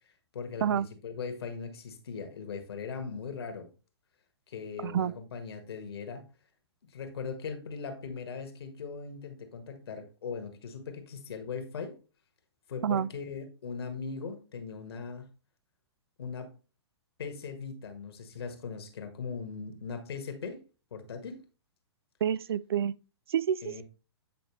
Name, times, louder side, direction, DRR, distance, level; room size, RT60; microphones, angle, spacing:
voice 1, 0.3-3.7 4.5-6.3 6.8-12.0 12.7-15.3 16.2-16.5 17.2-20.6 20.9-21.4 23.6-23.8, left 5 dB, 65° left, 1.6 m, -39 dB
voice 2, 4.8-5.1 12.8-13.1 22.2-22.9 23.3-23.8, right 9 dB, 60° right, 0.4 m, -28 dB
8.7 x 5.0 x 3.2 m
figure-of-eight pair, 110°, 14 cm